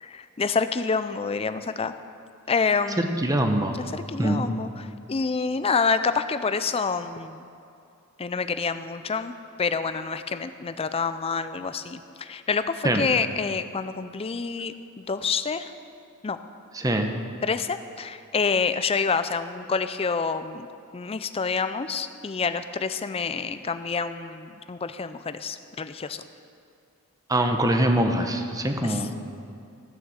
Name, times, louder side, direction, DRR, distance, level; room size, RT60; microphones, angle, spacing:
voice 1, 0.0-1.9 2.5-3.2 3.7-7.5 8.2-15.7 16.2-16.4 17.4-20.7 20.9-26.2 28.8-29.1, left 5 dB, 25° left, 11 dB, 0.4 m, -28 dB
voice 2, 3.0-3.8 4.2-4.5 12.8-13.1 16.7-17.1 27.3-29.1, right 1 dB, 15° right, 5 dB, 0.9 m, -23 dB
14.5 x 6.6 x 7.4 m, 2.5 s
head